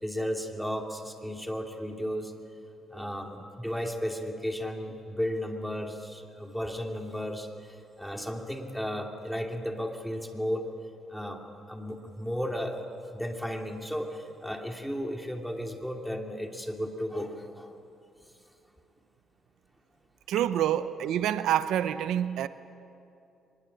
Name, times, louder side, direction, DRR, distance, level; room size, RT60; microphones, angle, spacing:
voice 1, 0.0-2.3 2.9-10.7 11.1-17.7, equal, ahead, 2.7 m, -34 dB
voice 2, 20.3-22.5, right 11 dB, 80° right, 0.7 m, -27 dB
24.0 x 21.5 x 8.6 m
cardioid pair, 90°, 0 cm